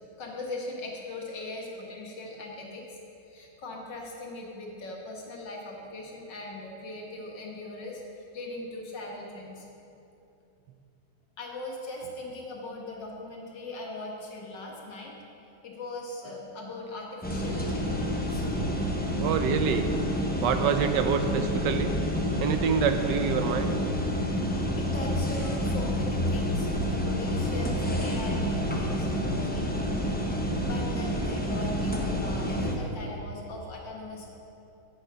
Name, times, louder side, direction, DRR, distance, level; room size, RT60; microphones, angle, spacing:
voice 1, 0.2-9.7 11.4-15.1 15.6-18.5 24.8-30.2 30.6-34.3, left 2 dB, 75° left, -1 dB, 2.2 m, -40 dB
sound 1, 17.2-32.7, equal, 10° left, 0.5 m, -28 dB
voice 2, 19.2-19.9 20.4-21.9 22.4-23.7, right 7 dB, 75° right, 7 dB, 1.3 m, -26 dB
10.5 x 8.0 x 5.7 m, 2.8 s
omnidirectional pair, 2.0 m